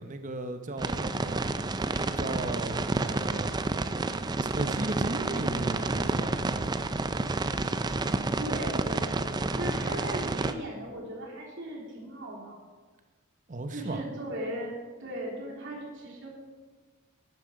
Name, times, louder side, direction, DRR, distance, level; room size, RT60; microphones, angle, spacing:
voice 1, 0.0-1.5 2.1-3.5 4.4-6.7 13.5-14.0, right 2 dB, 35° right, 8 dB, 0.8 m, -36 dB
sound 1, 0.8-10.5, right 3 dB, 20° right, 0.4 m, -30 dB
voice 2, 5.1-5.9 8.3-12.6 13.7-16.3, right 1 dB, 55° right, -4 dB, 3.3 m, -38 dB
sound 2, 6.4-6.9 8.9-10.2, equal, 10° left, 4.0 m, -50 dB
11.5 x 9.3 x 5.0 m, 1.4 s
head